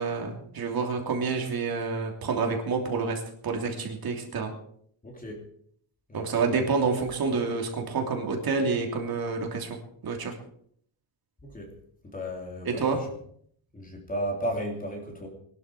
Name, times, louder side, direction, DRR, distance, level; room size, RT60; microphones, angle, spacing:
voice 1, 0.0-4.5 6.1-9.8 10.0-10.3 12.6-13.0, right 4 dB, 55° right, 2 dB, 3.1 m, -28 dB
voice 2, 5.0-5.4 6.1-6.3 11.4-11.7 12.0-13.1 13.7-15.3, equal, 20° left, 1 dB, 3.7 m, -34 dB
21.5 x 12.5 x 5.0 m, 0.64 s
wide cardioid pair, 175°, 43 cm